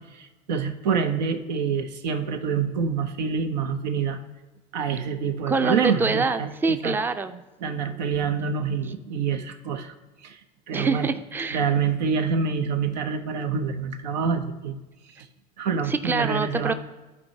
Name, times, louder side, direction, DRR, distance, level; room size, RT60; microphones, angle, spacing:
voice 1, 0.0-4.2 4.7-7.0 7.6-9.9 10.2-10.4 10.7-11.1 11.5-14.8 15.2-15.3 15.6-16.7, right 6 dB, 85° right, 7 dB, 0.6 m, -26 dB
voice 2, 5.5-7.4 10.7-11.6 15.9-16.7, right 4 dB, 10° right, 10 dB, 0.4 m, -25 dB
12.0 x 4.4 x 2.7 m, 1.1 s
hypercardioid pair, 80°, 21 cm